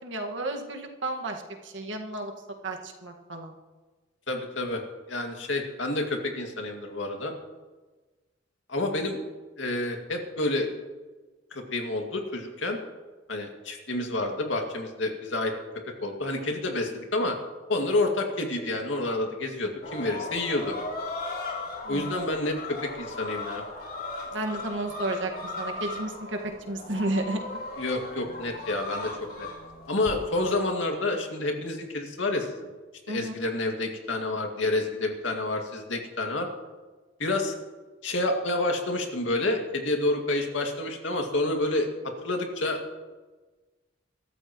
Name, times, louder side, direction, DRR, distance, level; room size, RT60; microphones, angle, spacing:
voice 1, 0.0-2.3 2.6-3.5 21.8-22.1 24.3-27.4 33.1-33.3, right 2 dB, 75° right, 2 dB, 1.8 m, -32 dB
voice 2, 4.3-4.8 5.1-7.3 8.7-9.2 9.6-10.7 11.5-12.8 13.3-15.5 16.0-17.4 17.7-20.7 21.9-23.6 27.8-29.1 29.4-29.5 29.9-32.7 33.1-36.5 37.2-37.5 38.0-41.9 42.2-42.8, left 2 dB, 80° left, 2 dB, 2.3 m, -29 dB
sound 1, 19.8-30.6, left 2 dB, 50° left, 3.3 m, -37 dB
22.5 x 13.5 x 3.1 m, 1.3 s
head